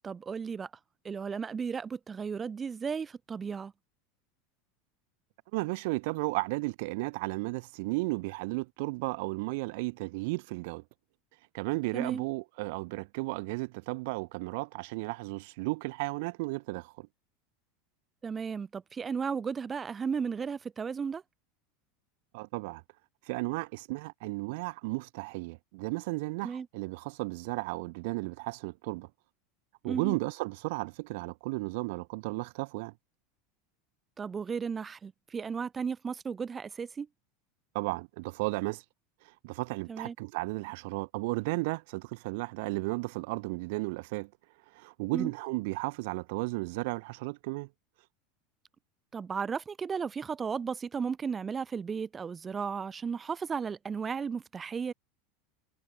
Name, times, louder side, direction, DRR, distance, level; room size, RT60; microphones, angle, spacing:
voice 1, 0.0-0.7 1.0-3.7 11.9-12.2 18.2-21.2 26.4-26.7 29.8-30.2 34.2-37.1 39.9-40.2 45.1-45.3 49.1-54.9, right 6 dB, 15° right, 5.2 m, -34 dB
voice 2, 5.5-10.8 11.5-17.1 22.3-22.8 23.2-29.1 29.8-32.9 37.7-38.8 39.2-44.3 44.7-47.7, right 25 dB, 60° right, 3.7 m, -34 dB
supercardioid pair, 160°, 0 cm